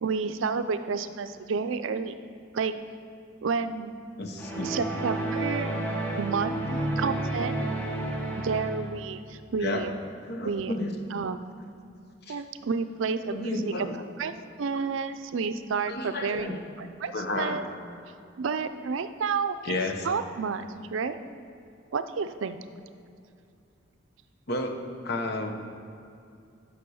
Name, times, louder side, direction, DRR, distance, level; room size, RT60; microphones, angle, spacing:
voice 1, 0.0-2.2 2.5-2.7 3.4-3.9 4.6-5.7 6.2-6.6 7.0-7.6 8.4-9.9 10.4-10.8 11.1-11.4 12.3-13.9 14.2-14.3 14.6-17.6 18.4-19.7 20.0-21.2 21.9-22.6, right 5 dB, 70° right, 10 dB, 0.4 m, -30 dB
voice 2, 4.2-4.7 9.6-9.8 10.3-10.9 12.2-12.4 13.3-13.9 15.9-16.6 17.1-17.6 19.6-20.1 24.5-24.8 25.0-25.5, left 2 dB, 50° left, 4 dB, 0.9 m, -32 dB
sound 1, 4.4-9.0, right 1 dB, 10° left, 0.9 m, -31 dB
9.6 x 5.4 x 6.3 m, 2.5 s
head